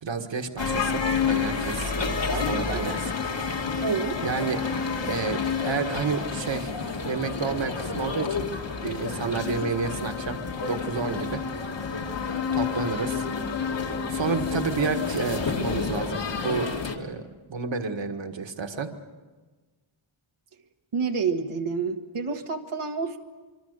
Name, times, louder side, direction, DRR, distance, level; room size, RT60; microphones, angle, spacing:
voice 1, 0.0-3.0 4.2-4.6 5.0-6.7 7.0-8.5 8.8-10.4 10.7-11.4 12.5-13.3 14.1-16.7 17.0-18.9, right 5 dB, 65° right, 6 dB, 1.8 m, -30 dB
sound 1, 0.6-17.0, left 5 dB, 60° left, 2.3 m, -29 dB
voice 2, 2.3-3.0 3.8-4.2 20.9-23.2, right 5 dB, 85° right, 2 dB, 1.7 m, -29 dB
25.0 x 25.0 x 6.7 m, 1.3 s
wide cardioid pair, 95°, 49 cm